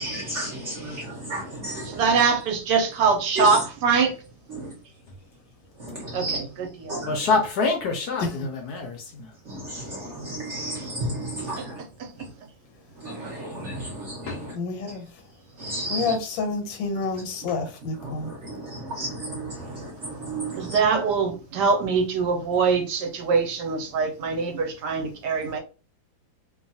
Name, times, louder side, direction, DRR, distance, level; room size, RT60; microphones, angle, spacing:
voice 1, 0.0-2.0 3.4-3.5 4.5-4.6 5.8-6.4 6.9-7.1 9.5-11.8 13.0-14.5 15.6-16.1 18.0-20.8, right 1 dB, 60° right, 0.8 m, -33 dB
voice 2, 1.8-4.1 6.1-7.0 11.6-11.7 20.5-25.6, right 5 dB, 75° right, 1.1 m, -23 dB
voice 3, 7.0-9.3 14.2-14.4, left 4 dB, 70° left, 0.9 m, -26 dB
voice 4, 14.5-15.1 15.9-18.3, left 3 dB, 90° left, 1.5 m, -28 dB
3.0 x 2.2 x 2.6 m
omnidirectional pair, 2.0 m